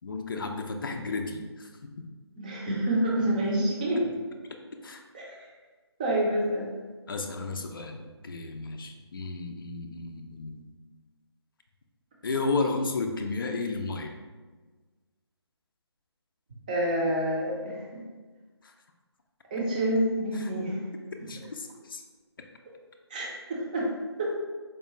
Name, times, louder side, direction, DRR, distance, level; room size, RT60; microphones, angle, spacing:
voice 1, 0.0-2.1 4.0-4.1 4.8-5.0 7.1-10.6 12.2-14.2 18.6-18.7 20.3-20.5 21.3-22.0, left 3 dB, 50° left, 4 dB, 0.4 m, -33 dB
voice 2, 2.4-4.0 5.3-5.4 6.0-6.7 16.7-17.8 19.5-20.8 23.1-23.9 24.2-24.4, right 1 dB, 20° right, -3 dB, 0.5 m, -27 dB
4.6 x 2.3 x 3.0 m, 1.4 s
figure-of-eight pair, 155°, 14 cm